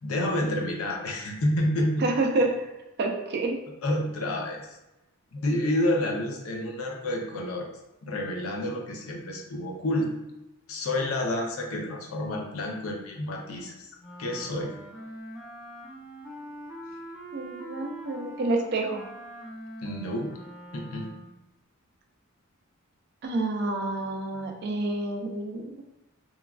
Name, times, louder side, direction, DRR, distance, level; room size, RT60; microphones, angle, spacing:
voice 1, 0.0-2.1 2.4-2.5 3.8-4.8 5.3-7.7 8.0-10.1 10.7-14.7 19.8-20.3 20.7-21.1, left 1 dB, 80° left, 0 dB, 0.6 m, -29 dB
voice 2, 2.0-2.7 3.0-3.6 17.3-19.1 23.2-25.7, right 2 dB, 50° right, 2 dB, 0.4 m, -28 dB
Wind instrument woodwind instrument, 14.0-21.4, equal, ahead, 0.6 m, -43 dB
3.1 x 2.3 x 2.3 m, 0.94 s
head